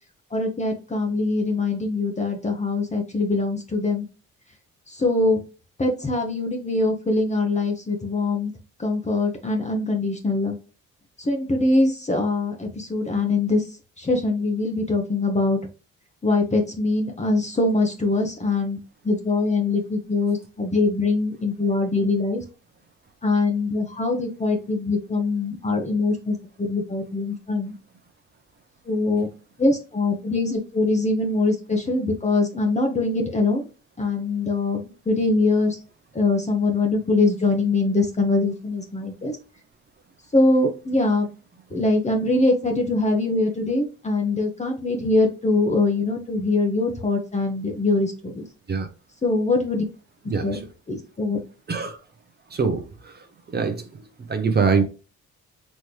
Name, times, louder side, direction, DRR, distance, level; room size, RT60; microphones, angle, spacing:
voice 1, 0.3-4.1 4.9-5.4 5.8-8.5 8.8-10.5 11.2-13.7 14.0-15.6 16.2-18.8 19.0-22.4 23.2-27.7 28.9-29.3 29.6-33.6 34.0-35.8 36.1-39.4 40.3-41.3 41.7-48.5 49.2-49.8 50.4-50.6 50.9-51.4, left 2 dB, 25° left, 3 dB, 1.0 m, -23 dB
voice 2, 50.3-50.7 51.7-52.0 52.5-54.8, right 5 dB, 35° right, 6 dB, 0.8 m, -25 dB
4.2 x 3.2 x 3.2 m, 0.33 s
cardioid pair, 90°, 30 cm